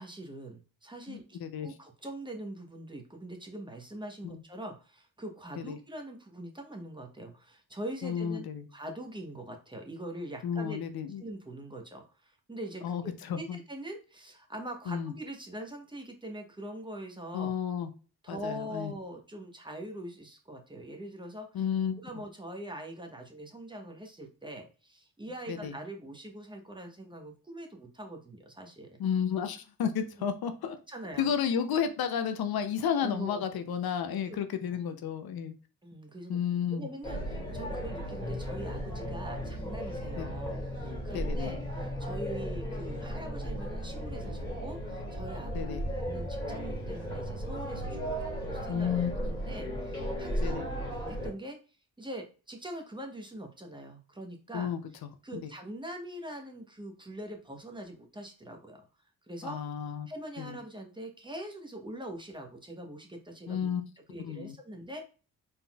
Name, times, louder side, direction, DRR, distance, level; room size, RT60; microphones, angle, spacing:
voice 1, 0.0-8.5 8.7-10.8 11.2-13.0 13.3-17.5 18.2-21.6 22.0-29.0 30.2-30.3 30.9-31.7 33.0-33.4 34.3-34.4 35.8-36.4 36.7-45.6 46.1-48.2 48.4-48.9 49.2-50.8 51.1-51.6 52.0-54.7 55.2-58.9 59.3-59.6 60.1-63.7 64.1-65.1, right 1 dB, 10° right, 2 dB, 1.0 m, -43 dB
voice 2, 1.1-1.7 4.2-4.4 5.6-5.8 8.0-8.7 10.4-11.2 12.8-13.6 14.9-15.1 17.3-17.9 18.3-18.9 21.5-22.0 25.5-25.8 29.0-30.8 31.2-35.5 36.3-36.9 40.2-40.3 41.1-41.6 45.5-45.8 48.7-49.1 50.4-50.7 54.5-55.5 59.4-60.1 60.4-60.6 63.5-63.8 64.2-64.6, left 8 dB, 70° left, 9 dB, 0.7 m, -32 dB
sound 1, 37.0-51.3, equal, 10° left, 1.9 m, -35 dB
4.2 x 3.7 x 2.3 m, 0.35 s
cardioid pair, 90°, 39 cm